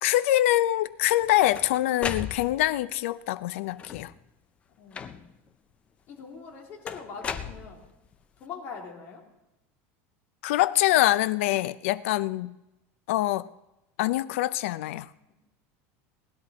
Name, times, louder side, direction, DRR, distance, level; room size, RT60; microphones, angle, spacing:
voice 1, 0.0-4.1 10.4-12.6 13.1-13.5 14.0-15.1, left 15 dB, 85° left, 16 dB, 0.5 m, -24 dB
sound 1, 1.0-2.8 3.7-4.2 4.9-5.5 6.9-8.1, left 7 dB, 20° left, 0.5 m, -37 dB
voice 2, 4.8-5.3 6.1-7.9 8.4-9.2 15.3-15.4, left 5 dB, 35° left, -1 dB, 2.7 m, -42 dB
19.0 x 10.5 x 4.2 m, 0.94 s
cardioid pair, 175°, 7 cm